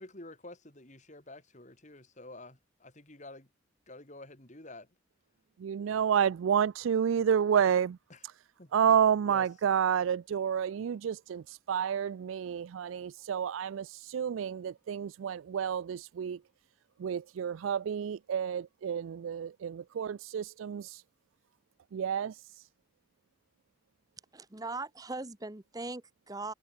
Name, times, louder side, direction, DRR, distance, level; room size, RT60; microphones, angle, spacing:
voice 1, 0.0-3.5 3.9-4.9 8.6-8.7 9.3-9.4, left 2 dB, 40° left, 3.3 m, -49 dB
voice 2, 5.6-8.0 8.2-8.4 8.7-16.4 17.0-21.0 21.9-22.7, right 8 dB, 80° right, 0.3 m, -30 dB
voice 3, 24.3-26.5, right 3 dB, 20° right, 1.0 m, -40 dB
head